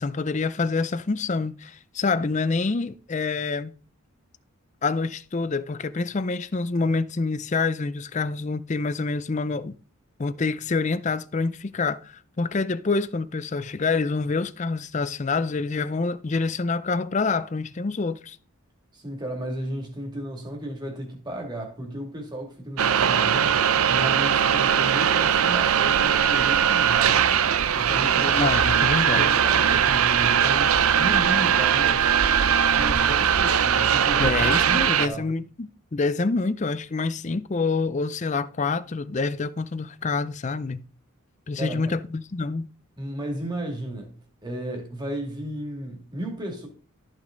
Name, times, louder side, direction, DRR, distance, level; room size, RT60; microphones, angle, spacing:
voice 1, 0.0-3.7 4.8-9.7 10.2-18.4 28.3-29.3 34.2-40.8 41.5-42.7, left 4 dB, 35° left, 0.4 m, -27 dB
voice 2, 18.9-27.2 27.8-28.5 29.1-32.1 32.7-35.2 41.6-42.0 43.0-44.1 44.4-46.7, right 1 dB, 20° right, 2.3 m, -34 dB
sound 1, 22.8-35.1, right 8 dB, 80° right, 0.6 m, -20 dB
13.0 x 6.2 x 3.8 m
head